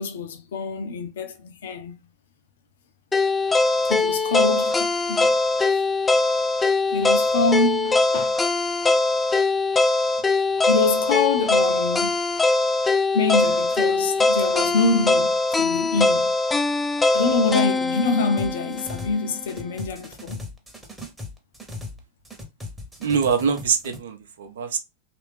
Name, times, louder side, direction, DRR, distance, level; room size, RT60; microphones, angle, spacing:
voice 1, 0.0-1.9 3.9-5.3 6.9-8.4 10.7-12.2 13.1-16.3 17.1-20.4, left 3 dB, 60° left, 0.6 m, -25 dB
sound 1, 3.1-19.2, left 3 dB, 15° left, 0.4 m, -22 dB
sound 2, 18.4-19.2 19.4-22.0 22.2-24.0, left 2 dB, 5° right, 0.9 m, -38 dB
voice 2, 23.0-24.8, right 6 dB, 60° right, 0.6 m, -24 dB
3.1 x 2.5 x 3.4 m
figure-of-eight pair, 90°, 0 cm